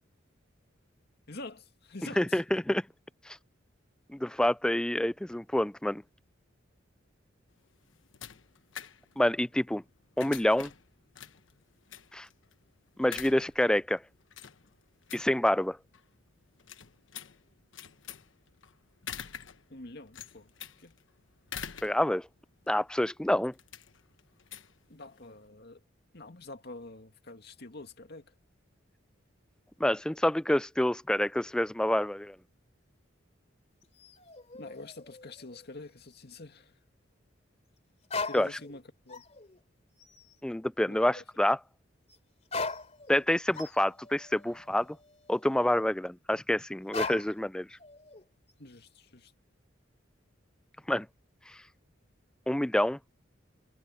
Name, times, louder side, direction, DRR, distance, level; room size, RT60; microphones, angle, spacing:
voice 1, 1.3-2.4 19.7-20.5 20.8-21.0 24.9-25.8 26.1-28.3 34.5-36.8 38.2-39.2 40.9-41.2 48.6-49.3, left 2 dB, 60° left, 2.2 m, -46 dB
voice 2, 2.2-2.9 3.3-3.4 4.1-6.0 9.2-9.8 10.2-10.7 12.1-12.3 13.0-14.0 15.1-15.8 21.8-22.3 22.7-23.5 29.8-32.4 38.3-38.5 40.4-41.6 43.1-45.0 45.3-47.7 50.9-51.1 51.5-51.6 52.5-53.0, left 1 dB, 5° left, 0.3 m, -27 dB
sound 1, 7.5-25.5, left 8 dB, 85° left, 1.2 m, -47 dB
sound 2, 33.8-35.8 36.1-36.2 38.0-38.8 39.1-39.6 40.0-40.3 42.1-42.2 42.4-45.8 46.9-47.5 47.8-48.5, left 4 dB, 35° left, 3.1 m, -40 dB
head